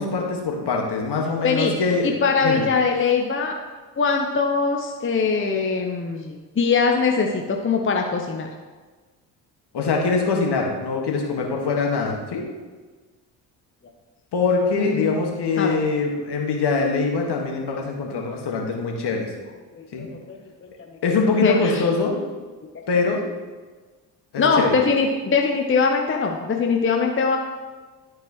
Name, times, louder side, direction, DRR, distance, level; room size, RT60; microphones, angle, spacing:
voice 1, 0.0-2.1 2.4-2.6 9.7-12.4 14.3-19.3 19.9-20.1 21.0-22.2 22.9-23.2 24.3-24.8, left 4 dB, 50° left, 0 dB, 1.8 m, -23 dB
voice 2, 1.3-1.7 2.0-3.5 4.0-8.5 14.7-15.2 15.6-15.8 19.7-20.4 21.4-21.8 24.4-27.4, left 5 dB, 25° left, 2 dB, 0.8 m, -22 dB
12.0 x 4.7 x 3.1 m, 1.3 s
hypercardioid pair, 45°, 49 cm